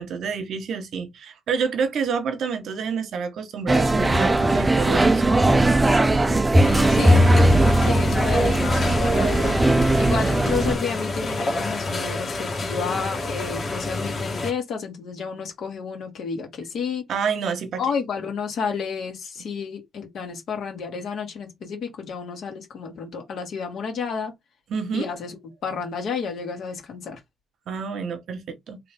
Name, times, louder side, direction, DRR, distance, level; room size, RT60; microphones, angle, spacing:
voice 1, 0.0-5.6 17.1-17.8 24.7-25.1 27.7-28.8, right 6 dB, 70° right, 0.9 m, -28 dB
sound 1, 3.7-10.8, right 1 dB, 20° right, 0.5 m, -18 dB
sound 2, 6.6-14.5, left 2 dB, 40° left, 1.5 m, -29 dB
voice 2, 6.9-7.2 7.8-9.6 10.0-17.1 17.8-24.3 24.9-27.2, left 6 dB, 70° left, 1.8 m, -31 dB
3.3 x 3.1 x 3.4 m
cardioid pair, 90°, 0 cm